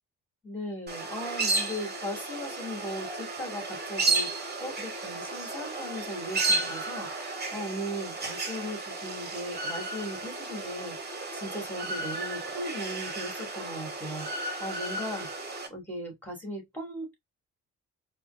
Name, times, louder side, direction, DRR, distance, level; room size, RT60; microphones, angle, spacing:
voice 1, 0.4-17.1, equal, 5° left, 2.8 m, -38 dB
sound 1, 0.9-15.7, right 3 dB, 35° right, 1.3 m, -33 dB
4.8 x 2.5 x 2.6 m
cardioid pair, 90°, 30 cm